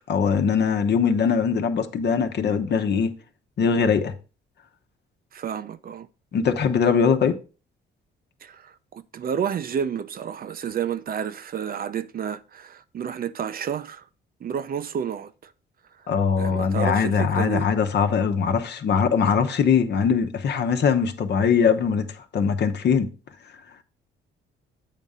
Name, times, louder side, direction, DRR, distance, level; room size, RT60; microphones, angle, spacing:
voice 1, 0.1-3.1 3.6-4.1 6.3-7.4 16.1-22.1 22.3-23.1, left 6 dB, 60° left, 1.0 m, -21 dB
voice 2, 5.3-6.1 8.4-14.0 14.4-15.3 16.4-17.7, right 8 dB, 50° right, 0.6 m, -30 dB
8.3 x 3.7 x 5.4 m
cardioid pair, 90°, 20 cm